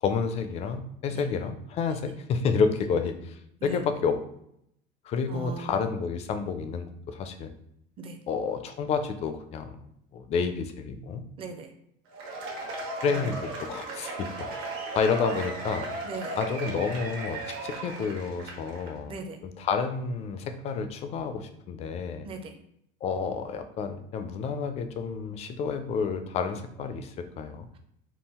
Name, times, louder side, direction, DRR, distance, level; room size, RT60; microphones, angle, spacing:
voice 1, 0.0-4.2 5.1-7.5 8.3-9.9 10.1-11.2 13.0-14.6 14.9-15.9 16.4-19.2 19.4-22.3 23.0-27.7, left 5 dB, 30° left, 8 dB, 0.4 m, -30 dB
voice 2, 5.3-5.8 8.0-8.2 11.4-11.7 13.1-13.4 16.0-16.4 19.1-19.4 22.2-22.6, right 3 dB, 25° right, 6 dB, 0.5 m, -39 dB
Cheering / Applause / Crowd, 12.1-18.9, right 2 dB, 70° right, 1.1 m, -36 dB
3.7 x 2.3 x 4.2 m, 0.74 s
cardioid pair, 155°, 21 cm